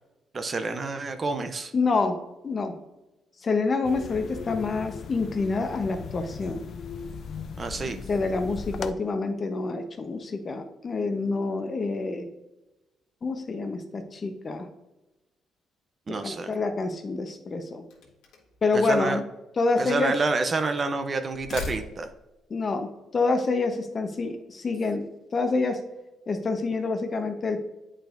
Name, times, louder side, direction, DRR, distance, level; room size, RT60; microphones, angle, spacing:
voice 1, 0.3-1.7 7.6-8.0 16.1-16.5 18.7-19.2 19.8-22.1, right 3 dB, 40° right, 8 dB, 0.7 m, -28 dB
voice 2, 1.7-2.2 2.4-2.7 3.4-6.6 8.1-12.3 13.2-14.7 16.1-17.9 18.6-19.2 19.6-20.1 22.5-25.1 25.3-25.8 26.3-27.6, left 3 dB, 40° left, 7 dB, 0.9 m, -27 dB
sound 1, 3.8-8.9, left 6 dB, 60° left, 0.4 m, -38 dB
sound 2, 17.9-18.6 19.5-20.6 21.3-22.3, left 3 dB, 85° left, 1.4 m, -40 dB
8.8 x 5.0 x 2.6 m, 1.0 s
cardioid pair, 90°, 0 cm